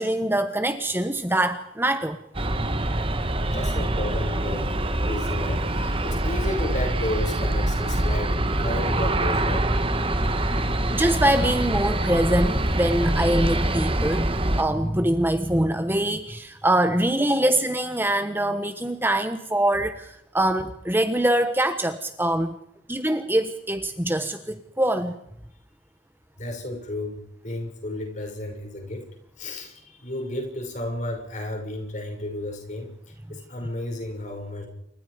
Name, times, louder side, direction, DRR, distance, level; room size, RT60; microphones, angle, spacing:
voice 1, 0.0-2.2 10.9-22.6 22.9-25.2, right 1 dB, 10° right, 8 dB, 1.2 m, -24 dB
Aircraft, 2.3-14.6, right 1 dB, 30° right, 1.6 m, -25 dB
voice 2, 3.5-4.7 5.0-9.7 26.4-29.1 29.4-32.9 33.3-34.7, left 1 dB, 40° left, 3 dB, 6.7 m, -32 dB
29.0 x 25.0 x 5.2 m, 0.76 s
head